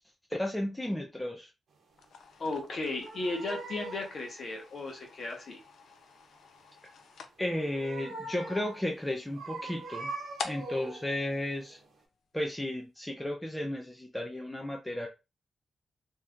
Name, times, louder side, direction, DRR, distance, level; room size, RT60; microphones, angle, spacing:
voice 1, 0.3-1.5 7.4-10.1 10.4-11.8 12.3-15.1, left 1 dB, 5° left, 1 dB, 0.4 m, -34 dB
sound 1, 1.9-12.3, left 5 dB, 80° left, 0.5 m, -48 dB
voice 2, 2.4-5.6, left 2 dB, 45° left, 1 dB, 0.9 m, -35 dB
sound 2, 2.6-4.2 7.4-8.9 9.3-11.2 11.7-11.8, right 3 dB, 75° right, 0.8 m, -42 dB
2.7 x 2.3 x 3.5 m, 0.26 s
wide cardioid pair, 165°, 0 cm